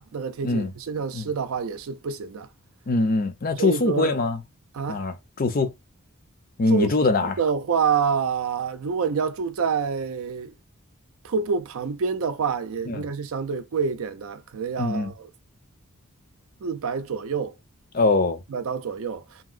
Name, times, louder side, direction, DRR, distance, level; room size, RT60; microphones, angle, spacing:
voice 1, 0.0-2.5 3.6-4.2 4.7-5.0 6.7-6.9 7.2-10.5 11.2-15.3 16.6-17.5 18.5-19.2, right 6 dB, 70° right, 0.4 m, -27 dB
voice 2, 2.9-4.4 4.9-5.7 6.6-7.4 12.9-13.0 14.8-15.1 17.9-18.4, left 3 dB, 40° left, 0.5 m, -23 dB
2.9 x 2.8 x 2.4 m
head